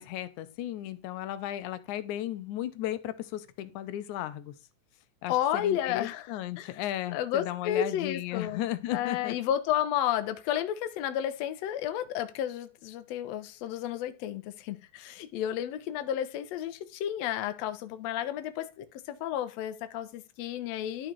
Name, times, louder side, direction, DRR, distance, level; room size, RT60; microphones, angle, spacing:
voice 1, 0.0-4.6 5.2-9.4, left 13 dB, 90° left, 2.1 m, -35 dB
voice 2, 5.3-6.3 6.6-6.8 7.1-8.6 8.9-21.1, left 10 dB, 70° left, 1.8 m, -32 dB
11.0 x 3.9 x 4.5 m
omnidirectional pair, 3.4 m